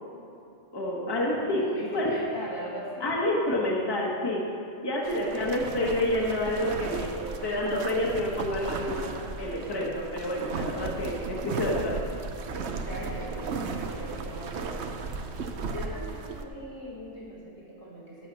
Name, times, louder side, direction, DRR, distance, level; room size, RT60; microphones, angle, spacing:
voice 1, 0.7-1.7 1.9-2.2 3.0-4.5 4.8-9.1 9.4-12.0, left 1 dB, 20° left, -3 dB, 1.3 m, -28 dB
voice 2, 1.5-3.2 5.1-5.9 12.8-15.0 15.7-18.3, equal, 75° left, -6 dB, 3.8 m, -40 dB
sound 1, 5.0-16.4, right 4 dB, 65° right, 1.0 m, -35 dB
11.5 x 8.2 x 6.2 m, 2.7 s
omnidirectional pair, 1.3 m